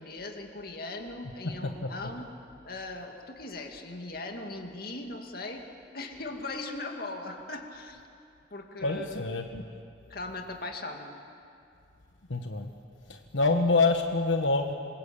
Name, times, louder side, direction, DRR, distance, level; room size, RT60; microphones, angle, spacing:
voice 1, 0.0-2.3 2.6-5.6 5.9-8.0 8.5-9.3 10.1-11.2, left 2 dB, 50° left, 3 dB, 2.4 m, -39 dB
voice 2, 8.8-9.6 12.3-12.7 13.1-14.7, left 3 dB, 90° left, 5 dB, 1.2 m, -26 dB
27.0 x 22.0 x 8.5 m, 2.6 s
head